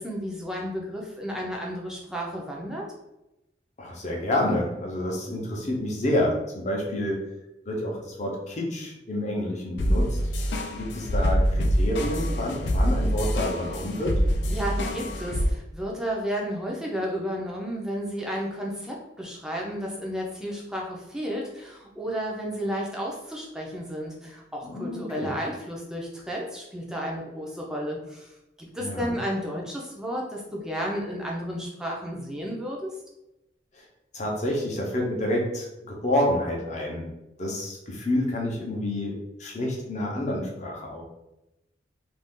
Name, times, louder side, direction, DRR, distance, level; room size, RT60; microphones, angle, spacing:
voice 1, 0.0-2.9 14.5-28.3 28.6-32.9, equal, 5° right, -2 dB, 0.5 m, -32 dB
voice 2, 3.8-7.2 7.7-10.2 10.8-14.2 24.6-25.3 28.8-29.2 34.1-37.1 37.4-39.1 39.4-41.0, left 1 dB, 40° left, -1 dB, 0.7 m, -28 dB
sound 1, 9.8-15.5, equal, 70° left, 0.4 m, -25 dB
2.5 x 2.4 x 3.6 m, 0.94 s
head